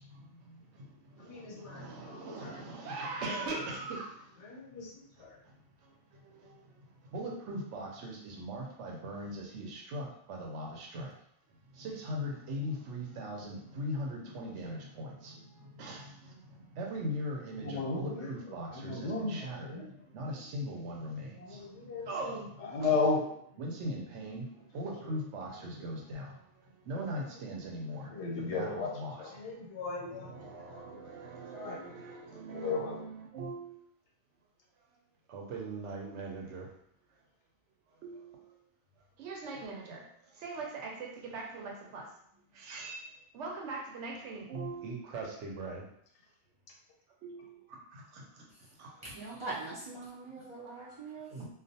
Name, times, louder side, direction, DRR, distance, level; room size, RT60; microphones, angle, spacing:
voice 1, 1.2-2.6 3.2-3.4 4.4-4.9 5.2-5.4 17.6-19.9 21.4-22.3 22.6-23.4 28.1-28.9 29.2-31.0 31.5-31.9 32.5-33.0, left 4 dB, 80° left, -1 dB, 1.0 m, -35 dB
voice 2, 1.7-4.0 7.1-11.1 11.8-15.1 15.8-16.0 16.8-18.9 19.2-19.7 20.1-21.3 22.1-22.5 22.8-23.0 23.6-24.4 24.7-26.2 26.9-28.1 28.4-29.1 30.2-33.7 35.3-36.6 38.0-38.3 39.2-40.0 40.4-42.0 42.7-43.0 43.4-45.8 47.2-47.5 51.3-51.5, right 1 dB, 90° right, 0 dB, 0.9 m, -39 dB
voice 3, 48.5-51.4, right 3 dB, 50° right, -8 dB, 0.3 m, -43 dB
2.4 x 2.2 x 2.6 m, 0.68 s
omnidirectional pair, 1.2 m